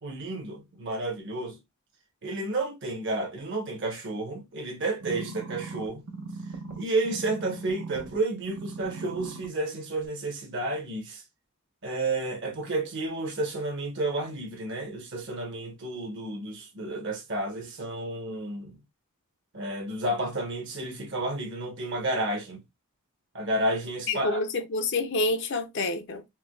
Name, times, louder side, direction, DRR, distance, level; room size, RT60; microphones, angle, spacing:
voice 1, 0.0-1.6 2.2-6.1 6.8-11.2 11.8-18.7 19.5-22.6 23.3-24.4, right 2 dB, 55° right, 1.2 m, -31 dB
sound 1, 5.0-8.2 8.5-9.5 10.0-10.1, right 3 dB, 80° right, 1.0 m, -39 dB
voice 2, 24.1-26.3, left 2 dB, 55° left, 0.6 m, -28 dB
4.6 x 2.2 x 2.3 m
head